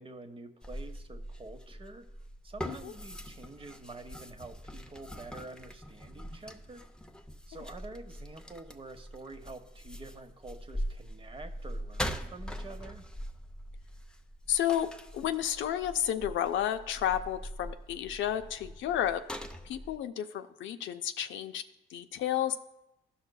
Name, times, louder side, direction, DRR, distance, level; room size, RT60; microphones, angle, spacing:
voice 1, 0.0-2.1 2.4-6.8 7.5-13.1, right 2 dB, 25° right, 7 dB, 0.8 m, -47 dB
sound 1, 0.6-20.0, equal, 5° left, 0.5 m, -42 dB
voice 2, 14.5-19.2 19.6-21.6 21.9-22.6, left 10 dB, 75° left, 9 dB, 0.5 m, -31 dB
16.0 x 5.7 x 2.2 m, 0.88 s
cardioid pair, 90°, 20 cm